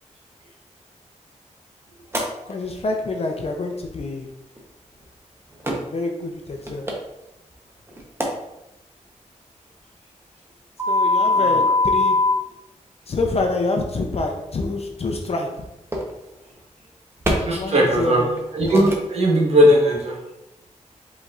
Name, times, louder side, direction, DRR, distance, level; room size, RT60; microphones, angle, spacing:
sound 1, 2.1-2.2 4.6-4.7 5.6-5.7 6.5-6.9 7.9-8.2 10.8-12.3 14.7-14.8 15.9-16.1 17.2-17.3 18.1-18.4 18.7-18.9, left 2 dB, 20° right, 0.9 m, -20 dB
voice 1, 2.5-4.3 5.9-6.9 10.9-12.2 13.1-15.5 17.5-18.4, left 3 dB, 55° left, 2 dB, 0.6 m, -26 dB
voice 2, 17.4-18.2 18.5-20.2, equal, 55° right, -2 dB, 1.3 m, -18 dB
5.1 x 4.1 x 2.5 m, 0.92 s
wide cardioid pair, 85°, 13 cm